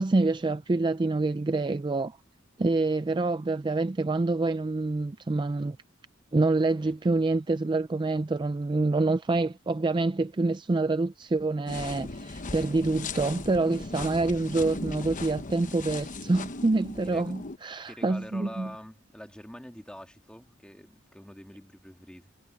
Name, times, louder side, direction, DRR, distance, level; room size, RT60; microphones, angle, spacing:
voice 1, 0.0-2.2 2.6-5.8 6.3-18.7, right 3 dB, 25° right, 0.4 m, -26 dB
sound 1, 11.7-17.6, left 3 dB, 40° left, 1.0 m, -38 dB
voice 2, 17.0-17.3 17.9-22.4, equal, 5° left, 2.3 m, -45 dB
head